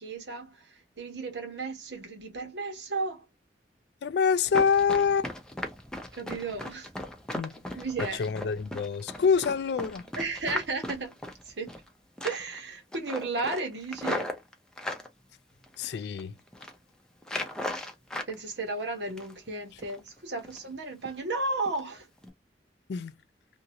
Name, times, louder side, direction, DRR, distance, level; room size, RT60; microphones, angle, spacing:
voice 1, 0.0-3.2 6.1-6.9 7.7-8.2 10.1-11.2 11.4-11.7 12.2-14.3 18.3-22.1, right 3 dB, 75° right, 1.2 m, -34 dB
voice 2, 4.0-5.3 7.3-7.6 8.1-10.1 15.8-16.3 22.9-23.1, left 6 dB, 65° left, 0.4 m, -26 dB
Run, 4.5-11.9 12.2-12.6 12.9-15.1 15.6-16.2 16.5-16.8 17.2-18.3 18.7-19.5 19.8-20.0 20.4-20.7 21.1-21.2 21.7-21.8 22.2-22.3, left 1 dB, 5° left, 0.6 m, -37 dB
2.9 x 2.5 x 2.8 m
head